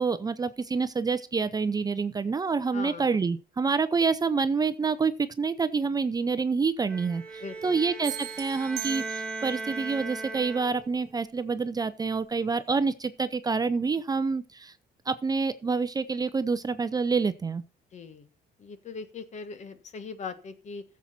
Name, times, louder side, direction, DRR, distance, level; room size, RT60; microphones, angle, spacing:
voice 1, 0.0-5.1 5.4-14.7 15.1-17.6, right 4 dB, 20° right, 0.6 m, -27 dB
voice 2, 2.7-3.2 7.4-7.8 17.9-18.3 18.6-20.8, left 4 dB, 45° left, 1.5 m, -40 dB
Bowed string instrument, 6.9-11.0, right 3 dB, 10° left, 3.6 m, -38 dB
sound 1, 8.0-9.7, right 18 dB, 80° right, 0.7 m, -39 dB
15.0 x 7.4 x 4.2 m
cardioid pair, 110°, 17 cm